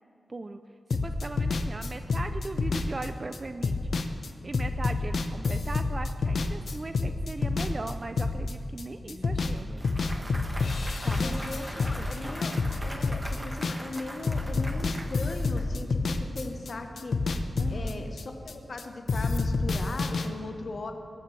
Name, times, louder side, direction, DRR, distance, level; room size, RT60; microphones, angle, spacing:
voice 1, 0.3-0.6 1.0-3.8 4.4-9.8 11.0-11.4 11.8-12.5 17.6-18.0, right 2 dB, 35° right, 8 dB, 0.5 m, -39 dB
sound 1, 0.9-8.8 9.1-9.6 9.8-14.0 14.2-18.8 19.1-20.3, left 3 dB, 75° left, 0.8 m, -28 dB
voice 2, 8.8-9.3 11.2-12.6 12.8-16.0 16.3-17.2 17.7-20.9, left 2 dB, 55° left, 4 dB, 1.0 m, -38 dB
Clapping / Cheering / Applause, 9.4-15.7, right 1 dB, 15° right, 1.1 m, -42 dB
19.0 x 14.0 x 3.3 m, 2.4 s
wide cardioid pair, 95°, 0 cm